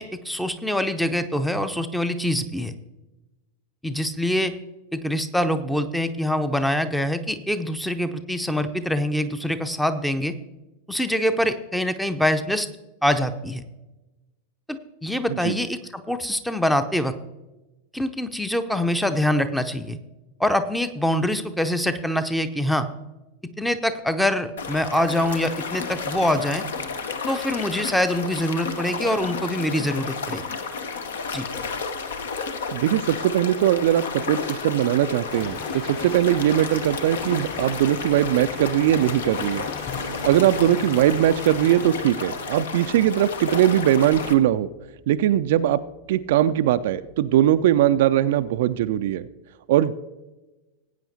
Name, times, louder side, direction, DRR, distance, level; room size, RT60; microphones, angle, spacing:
voice 1, 0.0-2.7 3.8-4.6 4.9-10.4 10.9-12.7 13.0-13.6 14.7-17.1 17.9-20.0 20.4-22.9 23.6-26.6 27.3-30.4 31.3-31.4, left 1 dB, 5° left, 10 dB, 0.6 m, -24 dB
sound 1, 24.6-44.3, left 5 dB, 65° left, 0.8 m, -32 dB
voice 2, 32.7-39.7 40.2-44.7 45.1-45.8 46.1-49.3 49.7-50.0, right 12 dB, 55° right, 12 dB, 0.3 m, -20 dB
sound 2, 35.3-41.9, left 5 dB, 30° left, 1.0 m, -40 dB
sound 3, 39.9-49.3, left 1 dB, 45° left, 3.2 m, -46 dB
19.0 x 8.9 x 2.7 m, 1.1 s
figure-of-eight pair, 90°, 0 cm